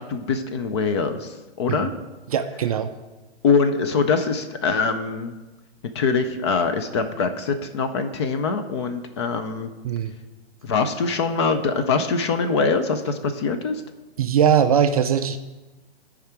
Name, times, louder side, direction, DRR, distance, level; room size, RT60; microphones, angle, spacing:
voice 1, 0.1-1.9 3.4-5.3 5.9-9.7 10.6-13.8, left 4 dB, 25° left, 8 dB, 0.4 m, -23 dB
voice 2, 2.3-2.9 9.8-10.1 14.2-15.4, right 8 dB, 35° right, 8 dB, 0.4 m, -20 dB
13.5 x 4.9 x 4.4 m, 1.1 s
hypercardioid pair, 150°, 32 cm